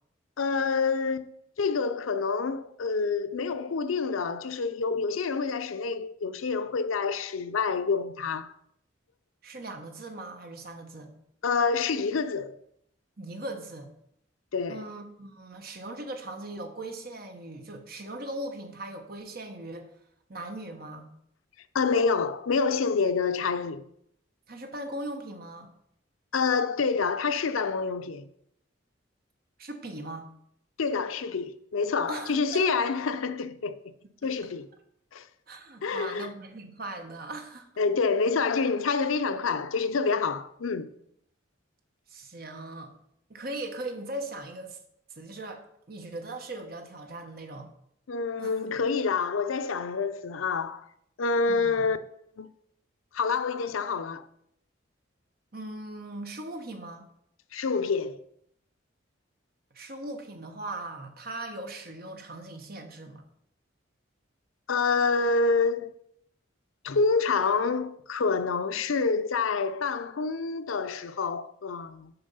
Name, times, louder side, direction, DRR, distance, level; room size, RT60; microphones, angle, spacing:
voice 1, 0.4-1.2 1.6-8.5 11.4-12.6 14.5-14.8 21.7-23.8 26.3-28.3 30.8-33.8 34.2-34.7 35.1-35.3 35.8-36.3 37.8-40.9 48.1-50.9 51.2-52.0 52.4-52.5 53.1-54.2 57.5-58.2 64.7-65.9 66.8-72.1, left 4 dB, 85° left, 0.5 m, -27 dB
voice 2, 9.4-11.1 13.2-13.9 14.7-19.9 20.3-21.1 24.5-25.7 29.6-30.3 32.1-32.7 34.2-34.5 35.5-37.7 42.1-42.9 43.3-44.8 45.1-47.7 48.4-48.8 51.5-51.9 55.5-57.1 59.7-63.2, right 2 dB, 45° right, 1.1 m, -39 dB
6.9 x 5.5 x 5.4 m
head